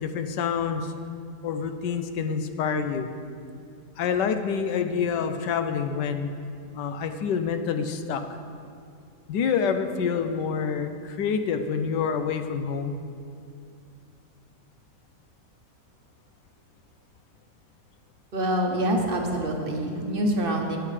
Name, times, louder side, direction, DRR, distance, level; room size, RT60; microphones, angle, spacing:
voice 1, 0.0-0.9 1.4-3.1 4.0-6.3 6.7-8.2 9.3-13.0, left 6 dB, 85° left, 8 dB, 1.3 m, -27 dB
voice 2, 18.3-20.8, right 1 dB, 40° right, 2 dB, 1.0 m, -26 dB
13.0 x 9.2 x 3.3 m, 2.4 s
omnidirectional pair, 1.8 m